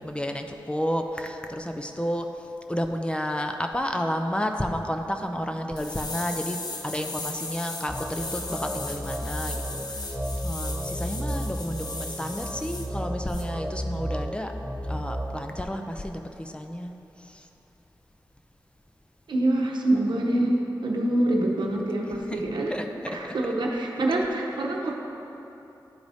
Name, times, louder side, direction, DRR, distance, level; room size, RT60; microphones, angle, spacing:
voice 1, 0.0-2.3 2.7-10.2 10.4-14.5 14.8-16.9 17.3-17.5 22.3-22.4 22.7-23.3, equal, 15° left, 4 dB, 0.5 m, -31 dB
sound 1, 5.8-12.9 13.3-13.4, left 2 dB, 60° left, 0.8 m, -37 dB
sound 2, 7.9-15.2, equal, 5° right, 0.9 m, -33 dB
voice 2, 19.3-22.8 23.1-24.9, right 1 dB, 80° right, 0 dB, 0.8 m, -25 dB
11.5 x 4.7 x 2.7 m, 2.9 s
cardioid pair, 65°, 8 cm